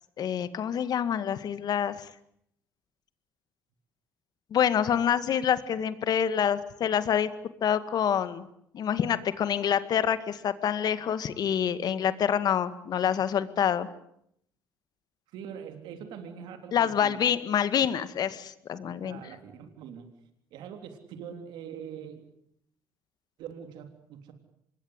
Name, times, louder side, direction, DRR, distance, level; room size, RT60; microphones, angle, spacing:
voice 1, 0.2-2.1 4.5-7.3 7.6-8.5 8.7-13.9 16.7-19.2, left 9 dB, 60° left, 13 dB, 2.0 m, -27 dB
voice 2, 15.3-17.3 18.7-20.1 20.5-22.3 23.4-24.3, right 8 dB, 75° right, 7 dB, 3.5 m, -43 dB
26.0 x 21.5 x 8.2 m, 0.73 s
supercardioid pair, 70°, 8 cm